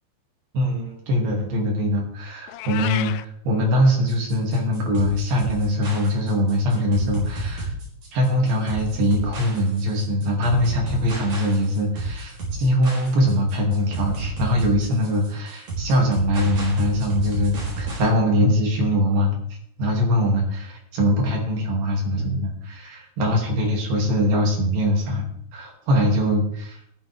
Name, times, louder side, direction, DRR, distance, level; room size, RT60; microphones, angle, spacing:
voice 1, 0.5-3.1 3.5-7.7 8.1-19.4 19.8-25.3 25.5-26.8, equal, 75° right, 0 dB, 4.4 m, -22 dB
Meow, 2.5-3.3, left 14 dB, 85° left, 2.4 m, -31 dB
sound 1, 4.1-18.1, right 3 dB, 55° right, 5.8 m, -31 dB
15.0 x 12.5 x 3.6 m, 0.71 s
omnidirectional pair, 4.1 m